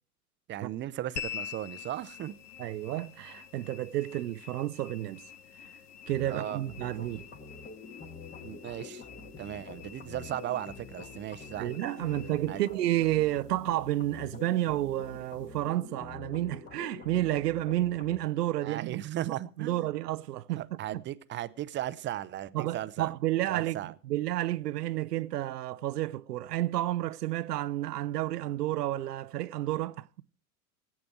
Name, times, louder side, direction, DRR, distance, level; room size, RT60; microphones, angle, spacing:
voice 1, 0.5-2.4 6.3-6.6 8.4-9.0 9.4-11.8 12.5-12.6 18.6-19.9 20.6-23.1 23.5-23.9, right 13 dB, 25° right, 0.6 m, -37 dB
sound 1, 1.2-15.8, left 10 dB, 85° left, 1.1 m, -48 dB
voice 2, 2.6-5.2 6.1-7.3 11.5-19.0 19.3-21.0 22.5-30.1, right 14 dB, 85° right, 0.6 m, -31 dB
sound 2, 6.1-18.2, left 4 dB, 20° left, 1.5 m, -46 dB
16.5 x 8.6 x 4.6 m
hypercardioid pair, 105°, 46 cm